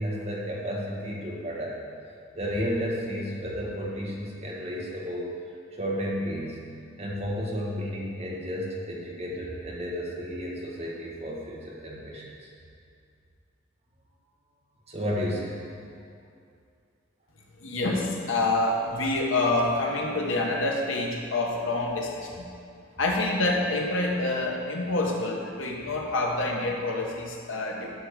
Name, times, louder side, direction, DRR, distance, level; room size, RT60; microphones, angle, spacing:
voice 1, 0.0-1.8 2.3-5.4 5.7-6.6 7.0-12.3 14.9-15.6, equal, 30° right, -3 dB, 1.3 m, -32 dB
voice 2, 17.6-22.5 23.0-27.9, left 2 dB, 80° left, 0 dB, 1.2 m, -27 dB
10.5 x 3.7 x 6.6 m, 2.4 s
head